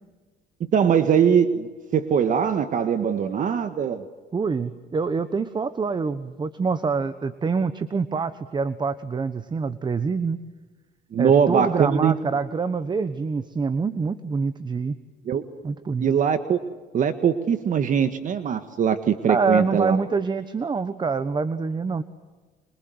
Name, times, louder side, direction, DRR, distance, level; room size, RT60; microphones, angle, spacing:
voice 1, 0.7-4.0 11.1-12.1 15.3-15.4 16.0-16.6 16.9-20.0, right 7 dB, 50° right, 10 dB, 1.6 m, -21 dB
voice 2, 4.3-10.4 11.2-15.0 15.6-16.1 19.3-22.0, right 4 dB, 25° right, 13 dB, 1.2 m, -26 dB
27.5 x 26.5 x 7.9 m, 1.4 s
cardioid pair, 110°, 17 cm